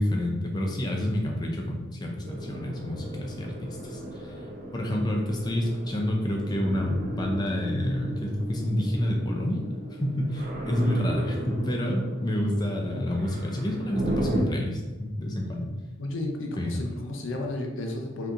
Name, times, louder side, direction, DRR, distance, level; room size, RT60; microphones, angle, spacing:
voice 1, 0.0-4.5 4.7-9.6 9.9-15.7 16.6-16.8, left 1 dB, 20° left, 1 dB, 0.4 m, -28 dB
sound 1, 2.2-14.4, right 1 dB, 45° right, 0.4 m, -36 dB
voice 2, 16.0-18.3, left 2 dB, 75° left, 2 dB, 0.5 m, -33 dB
3.6 x 2.8 x 2.4 m, 1.2 s
head